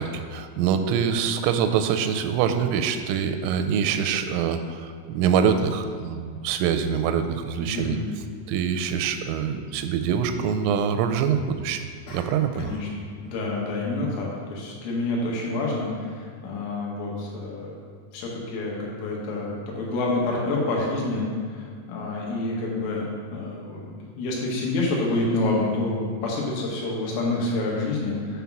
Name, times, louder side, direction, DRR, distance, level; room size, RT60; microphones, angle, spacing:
voice 1, 0.0-8.0 8.5-12.7, right 7 dB, 85° right, 8 dB, 3.1 m, -25 dB
voice 2, 7.6-8.1 12.6-17.8 18.1-28.4, left 2 dB, 85° left, -3 dB, 3.8 m, -28 dB
sound 1, 12.1-12.9 13.2-13.5, left 1 dB, 70° left, 2.3 m, -45 dB
8.5 x 3.9 x 5.9 m, 2.1 s
omnidirectional pair, 5.6 m